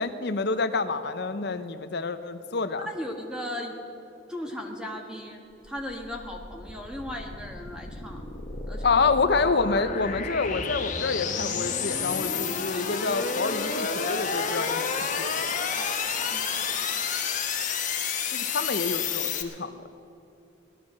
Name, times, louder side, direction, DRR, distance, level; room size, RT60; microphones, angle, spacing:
voice 1, 0.0-2.9 8.8-15.5 18.3-19.7, left 4 dB, 60° left, 10 dB, 0.8 m, -28 dB
voice 2, 2.8-3.8 4.3-8.3 8.7-9.1 15.7-16.9, left 1 dB, 5° right, 1 dB, 1.5 m, -37 dB
sound 1, 5.6-19.4, left 6 dB, 40° left, 1.2 m, -30 dB
17.0 x 12.5 x 6.3 m, 2.8 s
head